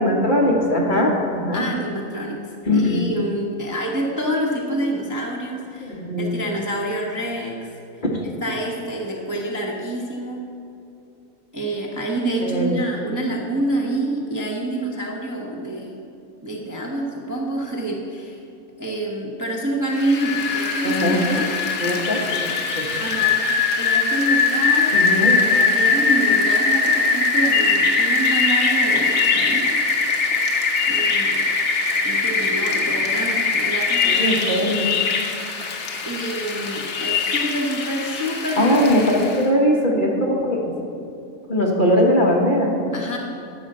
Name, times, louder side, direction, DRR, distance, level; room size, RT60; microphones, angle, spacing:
voice 1, 0.0-1.6 2.7-3.1 5.8-6.3 12.4-12.8 20.8-21.2 21.8-22.5 22.8-23.0 24.9-25.4 34.0-34.9 38.6-40.6 41.5-42.7, equal, 35° left, -2 dB, 1.4 m, -20 dB
voice 2, 1.5-2.4 2.7-7.7 8.4-10.4 11.5-15.9 16.4-18.4 18.8-21.5 23.0-29.8 30.9-31.4 32.0-34.7 36.0-38.7 42.9-43.2, right 1 dB, 15° right, -2 dB, 0.9 m, -27 dB
Rain, 19.9-39.4, left 4 dB, 55° left, 1.3 m, -21 dB
11.5 x 5.0 x 7.7 m, 2.7 s
omnidirectional pair, 1.5 m